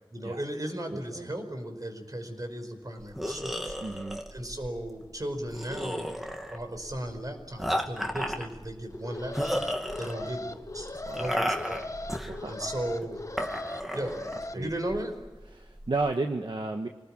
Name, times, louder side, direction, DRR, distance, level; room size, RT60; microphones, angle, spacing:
voice 1, 0.1-3.8 4.3-6.1 6.5-9.6 10.0-11.9 12.5-13.2 13.9-14.3 14.5-15.1, right 1 dB, 45° right, 6 dB, 4.9 m, -36 dB
voice 2, 0.9-1.3 3.8-4.2 10.1-10.3 11.0-11.3 12.2-12.7 14.5-14.7 15.5-16.9, right 3 dB, 70° right, 4 dB, 1.4 m, -33 dB
sound 1, 3.0-16.1, equal, ahead, 2.4 m, -35 dB
Alarm, 8.9-14.5, left 2 dB, 40° left, 1.0 m, -39 dB
26.5 x 19.5 x 9.0 m, 1.2 s
wide cardioid pair, 55°, 9 cm